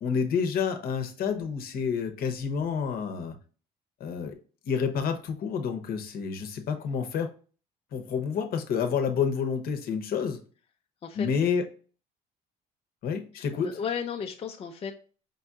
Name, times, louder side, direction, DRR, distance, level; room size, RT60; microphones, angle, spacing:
voice 1, 0.0-3.4 4.0-4.4 4.7-7.3 7.9-10.4 11.2-11.6 13.0-13.7, left 6 dB, 60° left, 0.8 m, -29 dB
voice 2, 13.3-14.9, left 7 dB, 35° left, 0.5 m, -34 dB
5.3 x 2.7 x 2.3 m
cardioid pair, 110°, 17 cm